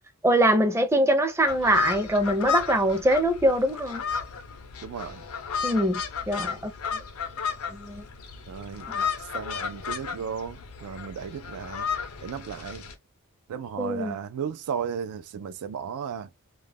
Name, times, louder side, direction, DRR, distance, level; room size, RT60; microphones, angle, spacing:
voice 1, 0.2-4.0 5.6-6.0 6.3-7.0 7.7-8.0 8.9-9.0 13.8-14.2, right 1 dB, 10° right, 0.5 m, -23 dB
sound 1, 1.5-12.9, left 6 dB, 80° left, 0.6 m, -33 dB
voice 2, 4.8-5.3 8.5-8.9 9.2-11.9 12.2-12.9 13.5-16.3, right 7 dB, 85° right, 0.3 m, -35 dB
2.3 x 2.1 x 3.4 m
head